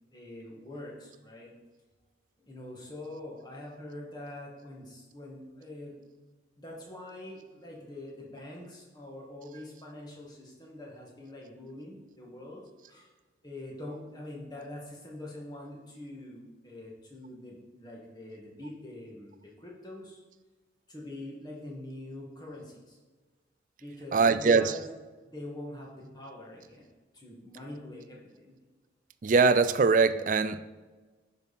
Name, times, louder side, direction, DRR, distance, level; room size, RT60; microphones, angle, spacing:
voice 1, 0.1-1.5 2.4-6.0 6.6-12.6 12.9-13.1 13.4-20.2 20.9-23.0 23.8-24.9 25.2-26.9 27.1-28.5, left 1 dB, 20° left, -3 dB, 1.9 m, -44 dB
voice 2, 24.1-24.7 29.2-30.7, right 4 dB, 40° right, 13 dB, 0.4 m, -22 dB
10.5 x 5.4 x 4.2 m, 1.3 s
head